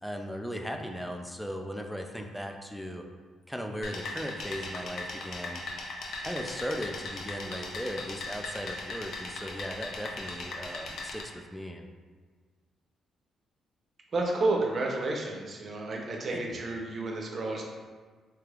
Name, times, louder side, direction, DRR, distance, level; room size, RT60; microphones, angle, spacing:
voice 1, 0.0-3.1 3.5-5.6 6.2-11.9 16.3-16.6, equal, ahead, 3 dB, 0.3 m, -37 dB
sound 1, 3.8-11.2, left 2 dB, 70° left, 0.5 m, -39 dB
voice 2, 14.1-17.6, right 2 dB, 45° right, 0 dB, 0.6 m, -30 dB
3.3 x 3.3 x 2.3 m, 1.5 s
cardioid pair, 90°, 0 cm